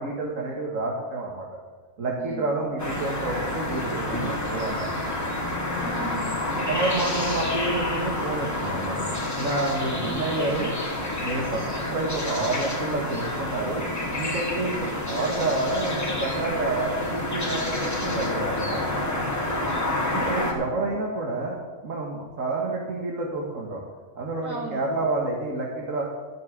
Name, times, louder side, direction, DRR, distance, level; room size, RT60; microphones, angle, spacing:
voice 1, 0.0-1.5 2.0-4.9 6.7-9.1 9.4-10.7 11.2-13.8 14.2-18.9 20.1-21.6 21.8-23.8 24.2-26.0, right 2 dB, 70° right, -1 dB, 2.0 m, -29 dB
voice 2, 2.2-2.5 5.6-6.3 19.5-19.9 20.2-20.5 24.4-24.8, right 3 dB, 15° right, -2 dB, 2.8 m, -37 dB
sound 1, 2.8-20.5, left 1 dB, 10° left, 2.5 m, -29 dB
13.5 x 6.6 x 8.4 m, 1.4 s
omnidirectional pair, 1.4 m